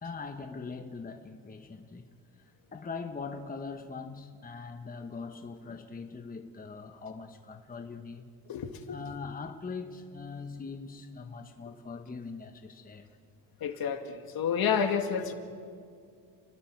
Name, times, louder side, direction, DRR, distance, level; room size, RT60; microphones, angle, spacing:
voice 1, 0.0-2.1 2.4-8.3 8.9-13.1, left 4 dB, 20° left, 1.1 m, -41 dB
voice 2, 8.5-9.0 13.6-15.3, left 7 dB, 60° left, 2.0 m, -30 dB
29.5 x 19.5 x 4.7 m
cardioid pair, 100°, 41 cm